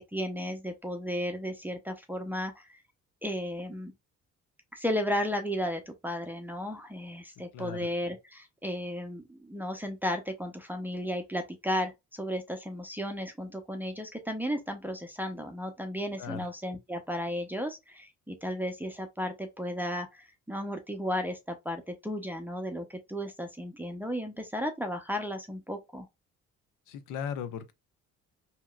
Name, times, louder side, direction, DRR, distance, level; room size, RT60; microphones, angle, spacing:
voice 1, 0.0-2.8 3.2-3.9 4.7-26.1, equal, 5° right, 0.6 m, -34 dB
voice 2, 7.5-7.9 16.2-16.5 26.9-27.7, left 8 dB, 90° left, 0.6 m, -37 dB
2.9 x 2.8 x 2.2 m
cardioid pair, 90°, 30 cm